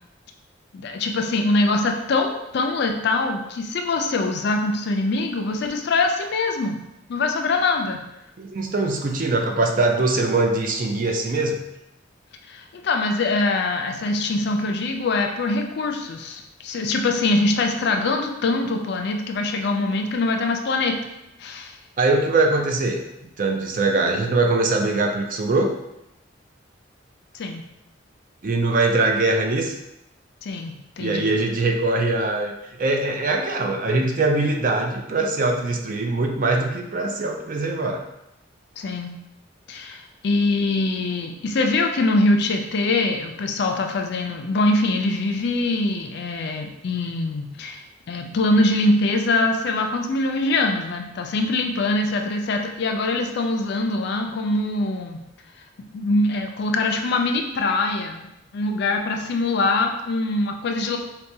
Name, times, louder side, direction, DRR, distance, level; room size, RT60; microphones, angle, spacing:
voice 1, 0.7-6.8 7.1-8.0 12.5-21.0 21.4-21.8 27.3-27.7 30.4-31.3 38.8-39.2 39.7-55.2 55.9-58.3 58.5-61.0, left 2 dB, 60° left, 4 dB, 0.4 m, -23 dB
voice 2, 8.4-11.6 22.0-23.0 23.4-25.7 28.4-29.7 31.0-32.5 32.8-38.0, right 2 dB, 45° right, 2 dB, 0.4 m, -22 dB
4.5 x 2.2 x 2.7 m, 0.87 s
head